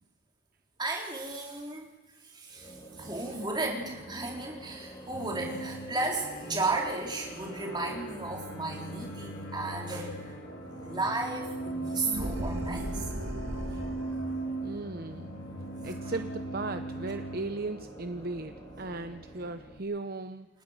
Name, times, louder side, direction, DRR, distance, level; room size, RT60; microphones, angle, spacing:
voice 1, 0.8-1.9 2.2-10.3 10.8-13.1 15.8-15.9, right 2 dB, 20° right, 0 dB, 4.1 m, -34 dB
sound 1, 2.5-19.8, right 1 dB, 20° left, 3.8 m, -46 dB
sound 2, 5.1-17.4, right 2 dB, 75° left, 2.6 m, -39 dB
sound 3, 12.0-14.2, right 1 dB, 75° right, 2.6 m, -36 dB
voice 2, 14.6-15.3 15.8-20.5, right 3 dB, 45° right, 8 dB, 0.9 m, -37 dB
29.0 x 19.0 x 6.7 m, 1.2 s
head